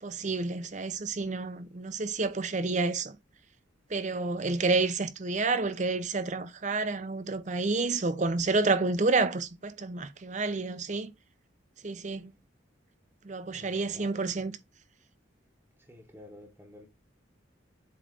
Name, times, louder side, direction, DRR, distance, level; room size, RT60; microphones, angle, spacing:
voice 1, 0.0-3.2 3.9-11.1 11.8-12.3 13.2-14.5, right 3 dB, 40° right, 0.6 m, -29 dB
voice 2, 13.5-14.5 15.9-16.9, left 1 dB, 10° right, 1.0 m, -51 dB
7.7 x 3.2 x 3.9 m
head